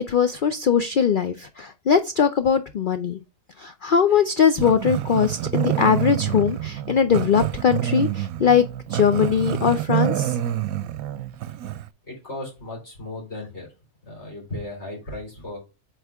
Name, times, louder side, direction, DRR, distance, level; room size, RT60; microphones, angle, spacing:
voice 1, 0.0-3.2 3.6-8.6 8.9-10.4, left 7 dB, 80° left, 0.4 m, -20 dB
Growling, 4.6-11.9, right 12 dB, 75° right, 1.0 m, -27 dB
voice 2, 12.1-13.7 14.0-15.6, left 2 dB, 45° left, 3.9 m, -35 dB
8.0 x 4.2 x 3.4 m
omnidirectional pair, 1.6 m